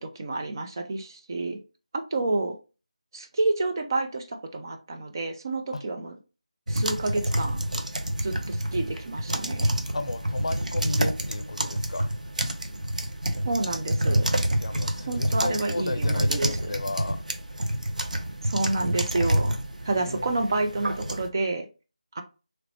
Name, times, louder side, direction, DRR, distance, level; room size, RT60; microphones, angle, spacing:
voice 1, 0.0-1.6 2.1-2.6 3.1-6.1 6.7-7.6 8.2-9.7 13.5-14.3 15.1-16.7 18.4-19.5 19.8-21.7 22.2-22.3, right 2 dB, 30° right, 0.4 m, -29 dB
sound 1, 6.7-21.3, right 1 dB, 85° right, 0.6 m, -28 dB
voice 2, 9.9-12.1 14.6-17.2 19.9-20.3, left 2 dB, 55° left, 0.5 m, -34 dB
3.0 x 2.9 x 2.9 m
figure-of-eight pair, 170°, 4 cm